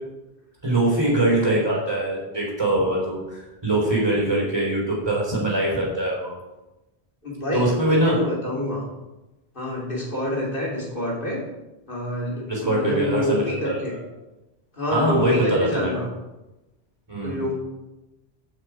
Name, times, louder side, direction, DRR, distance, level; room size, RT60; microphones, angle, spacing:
voice 1, 0.6-6.4 7.5-8.1 12.5-13.8 14.9-15.9 17.1-17.4, right 1 dB, 25° right, -3 dB, 3.8 m, -22 dB
voice 2, 7.2-8.8 9.5-11.4 11.9-13.9 14.7-16.1 17.2-17.5, left 1 dB, 55° left, -3 dB, 3.2 m, -27 dB
14.5 x 5.8 x 4.8 m, 1.0 s
omnidirectional pair, 1.1 m